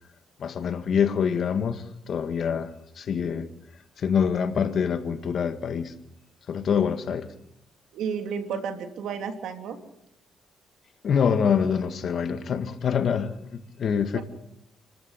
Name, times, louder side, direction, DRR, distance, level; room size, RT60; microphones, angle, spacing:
voice 1, 0.4-3.5 4.0-5.9 6.5-7.3 11.0-14.2, left 7 dB, 55° left, 1.9 m, -25 dB
voice 2, 7.9-9.8 14.1-14.2, right 6 dB, 80° right, 3.2 m, -32 dB
29.5 x 14.5 x 8.3 m
cardioid pair, 90°, 0 cm